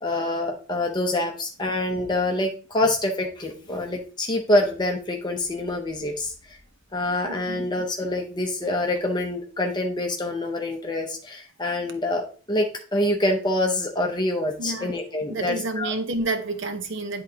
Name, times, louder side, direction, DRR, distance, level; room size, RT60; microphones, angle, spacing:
voice 1, 0.0-6.6 6.9-15.9, left 1 dB, 20° left, 2 dB, 0.6 m, -26 dB
voice 2, 7.2-7.6 14.6-14.9 15.3-17.2, right 2 dB, 65° right, 8 dB, 0.9 m, -29 dB
10.5 x 3.8 x 2.8 m, 0.41 s
head